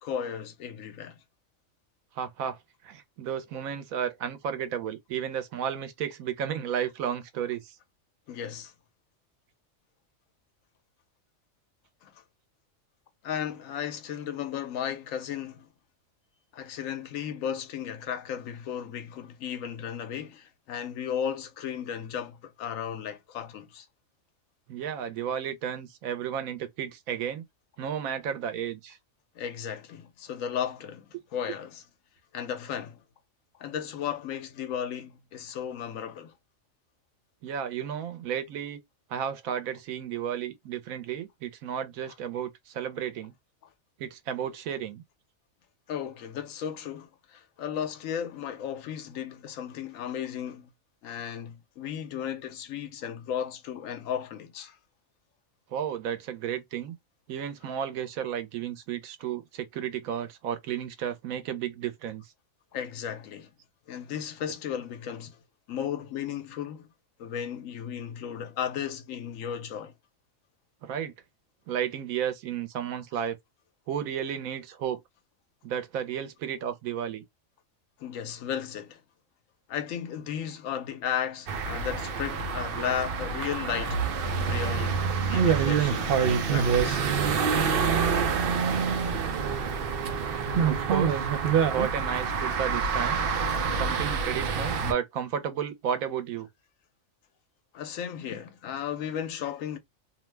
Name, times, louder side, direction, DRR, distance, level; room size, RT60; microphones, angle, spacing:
voice 1, 0.0-1.2 8.3-8.7 12.0-12.2 13.2-15.7 16.5-23.9 29.3-31.8 32.3-33.0 33.6-36.3 45.9-50.7 51.0-54.8 62.7-63.5 63.9-65.4 65.7-66.9 67.2-69.9 78.0-79.0 79.7-87.1 97.7-99.8, left 8 dB, 75° left, 1.0 m, -35 dB
voice 2, 2.2-2.6 2.8-7.8 24.7-27.4 27.8-29.0 37.4-38.8 39.1-43.3 44.0-45.0 55.7-56.9 57.3-62.2 70.8-71.1 71.7-73.4 73.9-75.0 75.6-77.2 90.6-91.3 91.7-93.2 93.7-96.5, right 8 dB, 90° right, 1.1 m, -33 dB
sound 1, 81.5-94.9, right 6 dB, 55° right, 0.7 m, -26 dB
2.8 x 2.1 x 3.1 m
omnidirectional pair, 1.4 m